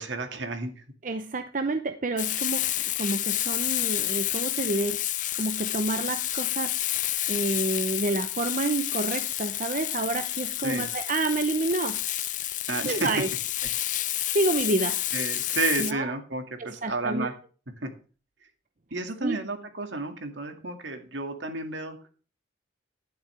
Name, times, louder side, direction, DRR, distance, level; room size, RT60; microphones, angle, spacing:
voice 1, 0.0-0.8 10.6-10.9 12.7-13.1 15.1-17.3 17.8-17.9 18.9-22.0, right 3 dB, 70° right, 6 dB, 2.0 m, -31 dB
voice 2, 1.0-2.6 3.0-6.8 7.3-12.0 12.9-13.3 14.3-15.0 15.8-16.1 16.6-17.3 19.2-19.4, right 2 dB, 45° right, 8 dB, 0.7 m, -29 dB
Frying (food), 2.2-15.9, left 14 dB, 40° left, 0.5 m, -29 dB
11.5 x 10.5 x 3.3 m, 0.38 s
head